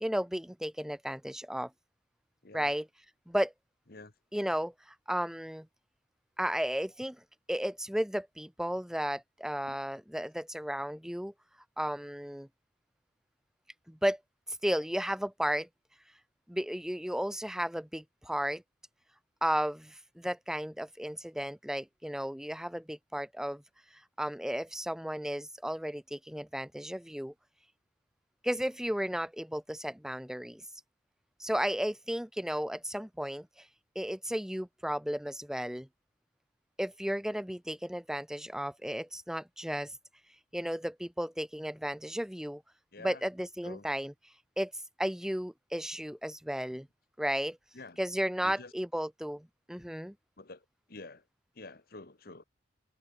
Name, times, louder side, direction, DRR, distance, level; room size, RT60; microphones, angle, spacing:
voice 1, 0.0-1.7 2.5-2.8 3.3-3.5 4.3-4.7 5.1-5.7 6.4-7.2 7.5-11.3 11.8-12.5 13.9-14.2 14.6-15.7 16.5-18.6 19.4-23.6 24.2-27.3 28.4-30.6 31.4-33.5 33.9-35.9 36.8-39.9 40.5-42.6 43.0-44.1 44.6-44.7 45.0-46.9 47.2-47.6 48.0-50.1, equal, 5° right, 1.0 m, -34 dB
voice 2, 2.4-2.8 3.9-4.1 9.7-9.8 42.9-43.2 43.6-43.9 47.7-48.0 48.4-48.7 50.4-51.3 51.5-52.4, left 3 dB, 60° left, 1.6 m, -48 dB
head